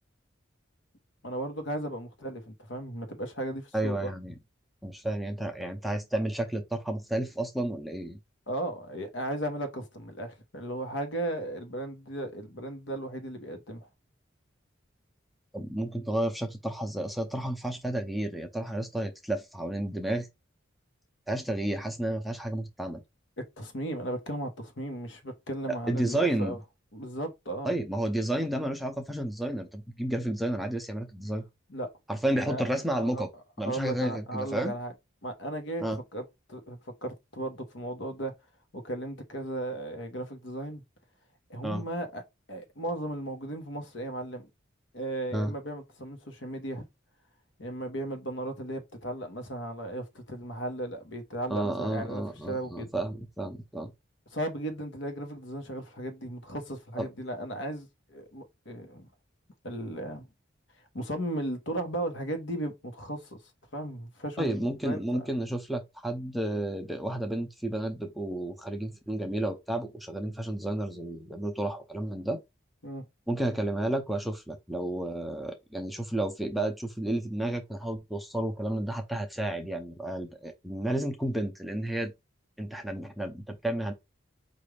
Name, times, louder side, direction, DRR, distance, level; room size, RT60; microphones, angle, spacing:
voice 1, 1.2-4.1 8.5-13.9 23.4-26.6 26.9-27.7 31.7-31.9 32.5-32.7 32.9-33.2 33.6-34.9 35.2-35.8 36.1-38.3 38.7-40.8 41.5-42.2 42.5-44.5 44.9-46.8 47.6-52.9 54.3-59.1 59.6-60.3 60.9-63.4 63.7-65.3 72.8-73.1, right 1 dB, 70° left, 1.1 m, -36 dB
voice 2, 3.7-4.3 4.8-8.2 15.5-20.3 21.3-23.0 25.9-26.6 27.6-31.4 32.1-33.3 33.6-34.7 35.8-36.0 41.6-41.8 45.3-45.5 51.5-53.9 57.0-57.1 64.4-72.4 73.3-82.1 82.6-83.9, right 1 dB, ahead, 0.5 m, -31 dB
4.9 x 2.5 x 3.3 m
head